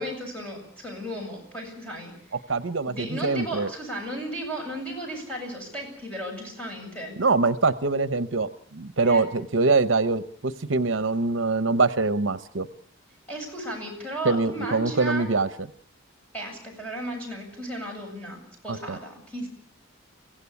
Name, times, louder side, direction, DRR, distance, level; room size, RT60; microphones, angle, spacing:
voice 1, 0.0-2.4 2.8-7.2 9.0-9.2 13.3-15.3 16.3-19.5, right 1 dB, 5° left, -1 dB, 7.8 m, -35 dB
voice 2, 2.5-3.7 7.2-12.7 14.2-15.5 18.7-19.0, right 3 dB, 70° right, 14 dB, 0.9 m, -24 dB
24.0 x 16.0 x 8.4 m, 0.63 s
head